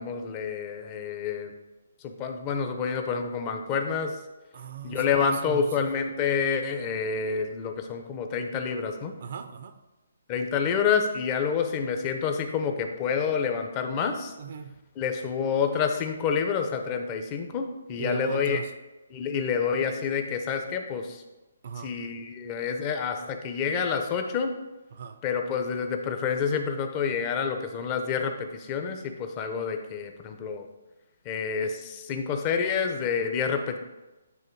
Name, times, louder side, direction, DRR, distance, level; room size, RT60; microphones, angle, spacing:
voice 1, 0.0-1.5 2.0-4.2 4.8-9.1 10.3-14.3 15.0-18.6 19.1-21.2 21.8-24.5 25.2-30.6 31.2-33.8, left 6 dB, 25° left, 5 dB, 0.7 m, -28 dB
voice 2, 4.5-5.6 9.2-9.8 14.4-14.8 18.0-18.7 21.6-22.0 24.9-25.2, right 7 dB, 50° right, 9 dB, 0.5 m, -37 dB
9.2 x 3.1 x 4.6 m, 1.1 s
hypercardioid pair, 160°, 0 cm